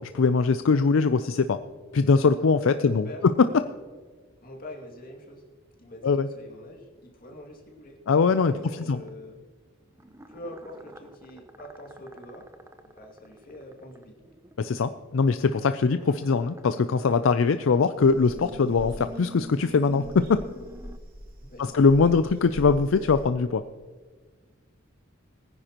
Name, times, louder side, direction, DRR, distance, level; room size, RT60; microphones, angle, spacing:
voice 1, 0.0-1.6 1.9-3.5 6.0-6.3 8.1-9.0 14.6-20.4 21.6-23.6, left 4 dB, 75° left, 11 dB, 0.4 m, -22 dB
voice 2, 2.7-3.2 4.4-5.4 5.8-9.4 10.3-12.5 12.8-14.2 21.4-22.0, left 1 dB, 45° left, 1 dB, 2.3 m, -45 dB
sound 1, 8.4-9.1 9.9-14.9 15.5-17.4 17.9-21.0, right 1 dB, 15° right, 0.6 m, -47 dB
sound 2, 18.0-23.3, equal, 45° right, 2.3 m, -43 dB
20.5 x 9.9 x 3.0 m, 1.5 s
head